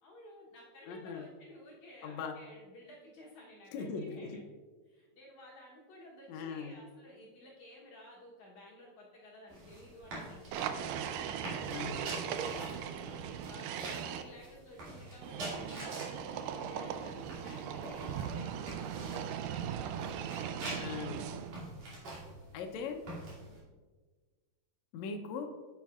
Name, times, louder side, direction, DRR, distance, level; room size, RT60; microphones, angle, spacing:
voice 1, 0.0-4.4 4.9-10.9 11.3-19.1 21.8-22.1 23.4-23.7, left 1 dB, 65° left, -4 dB, 2.1 m, -54 dB
voice 2, 0.9-1.2 2.0-2.4 3.7-4.4 6.3-6.7 11.7-12.0 20.8-21.2 22.5-23.0 24.9-25.5, left 5 dB, 90° left, 4 dB, 1.6 m, -39 dB
sound 1, 9.5-23.6, right 1 dB, 60° right, 4.0 m, -47 dB
sound 2, 10.5-14.2 15.2-21.6, right 8 dB, 85° right, 1.8 m, -39 dB
9.7 x 8.4 x 2.4 m, 1.4 s
omnidirectional pair, 4.2 m